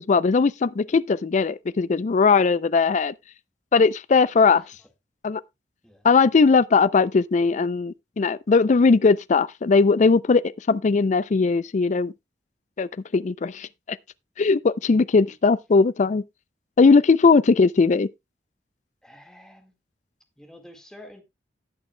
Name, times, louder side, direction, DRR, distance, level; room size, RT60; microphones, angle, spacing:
voice 1, 0.0-3.1 3.7-4.6 5.2-5.4 6.0-12.1 12.8-14.0 14.4-16.2 16.8-18.1, left 4 dB, 45° left, 0.4 m, -19 dB
voice 2, 4.5-4.9 5.8-6.0 19.0-19.7 20.4-21.2, left 1 dB, 5° left, 1.7 m, -48 dB
18.0 x 6.2 x 2.2 m
head